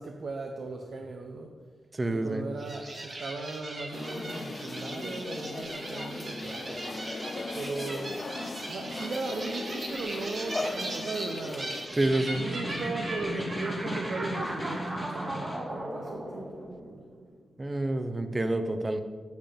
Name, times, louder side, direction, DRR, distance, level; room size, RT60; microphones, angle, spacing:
voice 1, 0.0-1.6 2.1-7.0 7.5-8.2 8.7-11.8 12.3-16.5, right 3 dB, 65° right, 2 dB, 0.8 m, -37 dB
voice 2, 2.0-2.5 12.0-12.5 17.6-19.0, right 1 dB, 25° right, 8 dB, 0.7 m, -28 dB
sound 1, 2.6-17.2, right 1 dB, 40° right, 1.7 m, -38 dB
sound 2, 3.9-11.9, left 2 dB, 30° left, 0.7 m, -38 dB
Snare drum, 11.9-15.7, equal, 15° left, 1.3 m, -37 dB
8.1 x 6.9 x 5.2 m, 1.5 s
wide cardioid pair, 110°, 0 cm